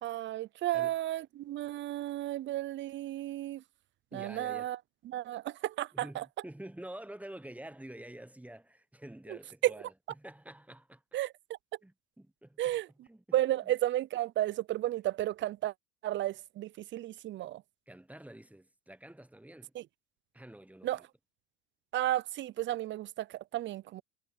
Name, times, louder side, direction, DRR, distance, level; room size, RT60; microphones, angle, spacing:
voice 1, 0.0-3.6 4.1-4.8 5.1-6.2 11.1-11.3 12.6-12.9 13.3-15.7 16.0-17.6 19.8-19.9 20.8-21.0 21.9-24.0, right 14 dB, 35° right, 0.5 m, -33 dB
voice 2, 4.1-4.7 5.9-11.0 11.8-12.8 13.0-13.2 13.6-13.7 17.9-19.7 20.3-21.1, right 1 dB, 5° right, 1.2 m, -48 dB
supercardioid pair, 95°, 35 cm